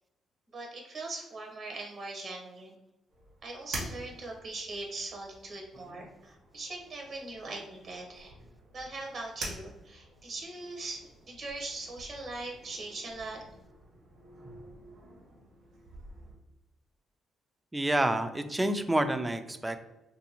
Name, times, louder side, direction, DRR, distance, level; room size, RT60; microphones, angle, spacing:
voice 1, 0.5-2.7 3.4-8.3 8.7-13.4, right 2 dB, 55° right, 0 dB, 0.7 m, -41 dB
sound 1, 3.1-16.3, right 2 dB, 85° right, 1.1 m, -47 dB
voice 2, 17.7-19.8, right 1 dB, 15° right, 8 dB, 0.3 m, -28 dB
2.6 x 2.6 x 2.8 m, 1.0 s
cardioid pair, 90°, 0 cm